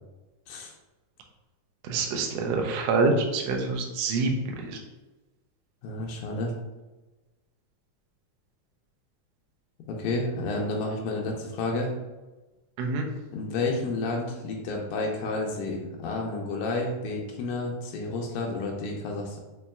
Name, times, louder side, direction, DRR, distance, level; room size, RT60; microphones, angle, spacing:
voice 1, 1.9-4.3 4.6-4.8 12.8-13.1, right 3 dB, 85° right, 1 dB, 1.5 m, -26 dB
voice 2, 5.8-6.5 9.9-11.9 13.3-19.4, left 2 dB, 90° left, 0 dB, 2.1 m, -30 dB
5.3 x 3.0 x 2.3 m, 1.1 s
omnidirectional pair, 3.5 m